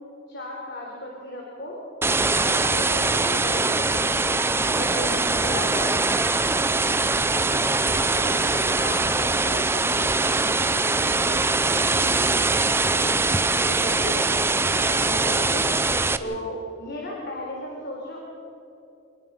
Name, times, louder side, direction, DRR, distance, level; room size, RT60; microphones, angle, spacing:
voice 1, 0.3-1.8 2.3-4.4 4.7-6.1 8.8-9.1 13.6-14.5 14.9-15.7 16.2-18.2, left 1 dB, 60° left, -2 dB, 4.0 m, -35 dB
sound 1, 2.0-16.2, right 3 dB, 10° right, 0.6 m, -22 dB
voice 2, 7.0-13.9 16.2-16.6, left 1 dB, 40° left, 5 dB, 2.3 m, -39 dB
27.5 x 20.0 x 5.7 m, 2.8 s
head